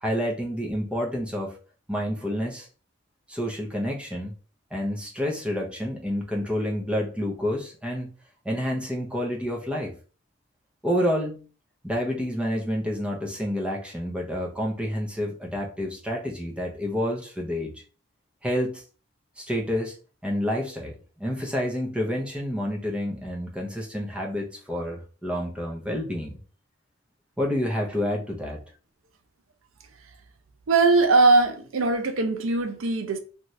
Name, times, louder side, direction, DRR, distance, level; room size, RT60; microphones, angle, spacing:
voice 1, 0.0-1.6 1.9-2.7 3.3-4.3 4.7-8.1 8.4-10.0 10.8-11.5 11.8-17.8 18.4-18.8 19.4-20.0 20.2-26.4 27.4-28.6, equal, 5° right, 0.6 m, -29 dB
voice 2, 30.7-33.2, right 3 dB, 80° right, 0.5 m, -20 dB
2.7 x 2.4 x 3.0 m
head